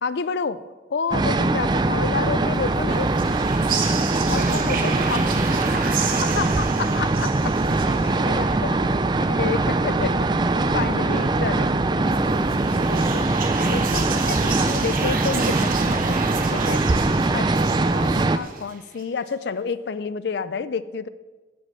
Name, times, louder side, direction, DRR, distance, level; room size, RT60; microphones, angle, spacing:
voice 1, 0.0-0.6 0.9-3.1 4.3-5.3 6.2-7.5 8.2-8.8 9.2-11.9 12.9-13.3 13.6-16.2 16.5-16.8 17.3-21.1, left 5 dB, 60° left, 15 dB, 0.4 m, -29 dB
sound 1, 1.1-18.4, right 2 dB, 20° right, 0.3 m, -22 dB
sound 2, 2.6-8.6 12.1-19.0, right 6 dB, 45° right, 0.8 m, -32 dB
voice 2, 4.2-6.1 7.7-8.6 10.8-11.4 11.8-12.3 12.7-13.6, left 1 dB, 35° left, 6 dB, 0.8 m, -41 dB
9.5 x 5.3 x 7.4 m, 1.3 s
head